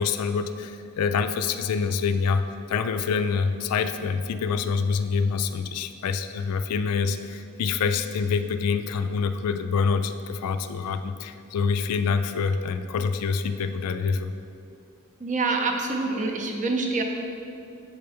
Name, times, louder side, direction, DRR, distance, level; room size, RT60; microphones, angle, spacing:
voice 1, 0.0-14.3, left 5 dB, 80° left, 9 dB, 0.3 m, -26 dB
voice 2, 15.2-17.0, right 3 dB, 35° right, 3 dB, 0.5 m, -26 dB
7.1 x 4.4 x 3.4 m, 2.6 s
head